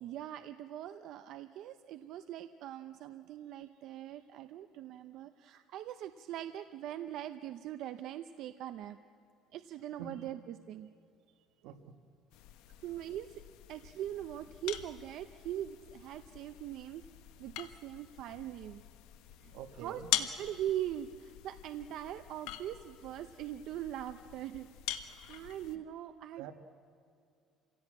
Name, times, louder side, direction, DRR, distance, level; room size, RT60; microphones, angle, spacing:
voice 1, 0.0-9.0 9.5-10.9 12.8-13.4 13.7-17.0 17.4-18.8 19.4-19.5 19.8-24.7 25.3-26.5, right 11 dB, 55° right, 9 dB, 0.6 m, -41 dB
voice 2, 11.6-12.0 19.5-20.1 26.4-26.5, right 7 dB, 80° right, 8 dB, 1.4 m, -46 dB
sound 1, 12.3-25.8, left 12 dB, 85° left, 1.2 m, -43 dB
27.0 x 16.5 x 8.7 m, 2.4 s
cardioid pair, 160°, 0 cm